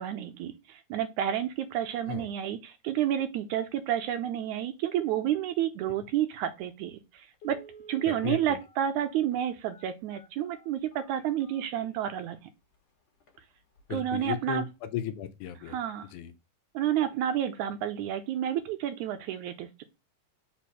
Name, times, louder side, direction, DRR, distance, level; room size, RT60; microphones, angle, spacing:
voice 1, 0.0-7.6 7.9-12.4 13.9-14.7 15.7-16.1 16.7-19.8, right 10 dB, 75° right, 1.9 m, -30 dB
Telephone, 7.3-12.2 12.7-12.8 13.2-13.4 13.8-14.1 14.4-14.5, right 2 dB, 55° left, 2.1 m, -53 dB
voice 2, 8.1-8.6 13.9-15.8 16.1-16.3, left 10 dB, 75° left, 1.9 m, -35 dB
5.0 x 4.3 x 6.0 m
omnidirectional pair, 3.7 m